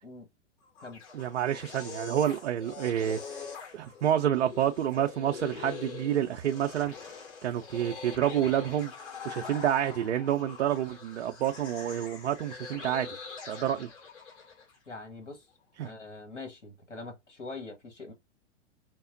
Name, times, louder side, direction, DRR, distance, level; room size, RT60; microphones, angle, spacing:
sound 1, 0.6-14.8, left 5 dB, 45° left, 2.2 m, -44 dB
voice 1, 1.1-6.9 7.4-8.9 9.2-13.2 13.5-13.9 15.8-15.9, right 10 dB, 70° right, 0.5 m, -29 dB
voice 2, 14.9-15.5 15.8-18.1, left 3 dB, 80° left, 1.3 m, -43 dB
5.8 x 2.0 x 2.5 m
figure-of-eight pair, 100°, 36 cm